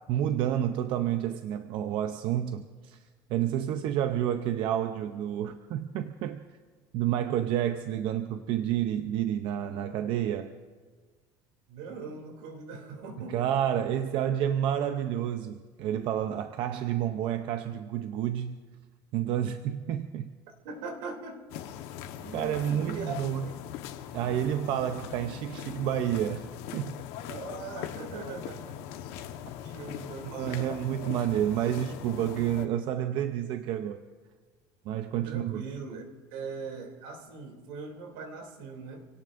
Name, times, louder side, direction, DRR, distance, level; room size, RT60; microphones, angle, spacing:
voice 1, 0.1-3.0 3.3-6.4 6.9-10.5 13.3-18.6 19.1-20.3 22.3-23.5 24.1-27.0 30.3-34.0 34.8-35.6, right 10 dB, 50° right, 0.6 m, -29 dB
voice 2, 11.7-13.5 20.6-21.4 22.2-23.1 23.4-23.5 27.3-28.8 29.6-30.8 35.2-36.0 36.3-39.1, right 4 dB, 75° right, 2.9 m, -41 dB
sound 1, 21.5-32.7, left 10 dB, 65° left, 1.2 m, -41 dB
27.5 x 17.5 x 2.6 m
cardioid pair, 165°, 11 cm